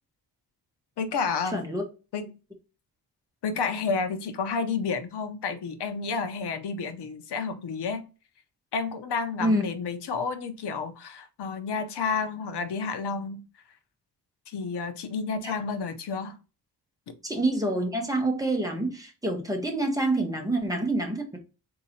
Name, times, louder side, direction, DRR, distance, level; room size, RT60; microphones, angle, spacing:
voice 1, 1.0-1.6 2.1-2.3 3.4-8.0 8.7-13.4 14.5-16.4, left 5 dB, 85° left, 0.8 m, -30 dB
voice 2, 1.5-1.8 9.4-9.6 15.4-15.5 17.2-21.4, right 1 dB, 10° right, 0.9 m, -27 dB
3.7 x 2.9 x 4.1 m
wide cardioid pair, 175°, 40 cm